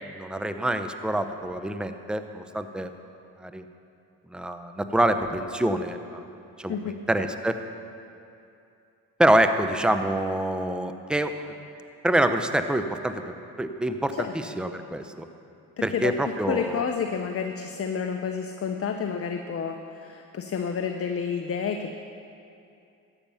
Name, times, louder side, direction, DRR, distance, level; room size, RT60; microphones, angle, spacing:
voice 1, 0.0-2.9 3.4-3.6 4.3-6.2 6.6-7.6 9.2-11.3 12.0-15.3 15.8-16.8, right 1 dB, ahead, 8 dB, 0.7 m, -26 dB
voice 2, 15.8-22.0, left 6 dB, 35° left, 5 dB, 0.8 m, -30 dB
13.0 x 9.0 x 5.6 m, 2.6 s
supercardioid pair, 65°, 38 cm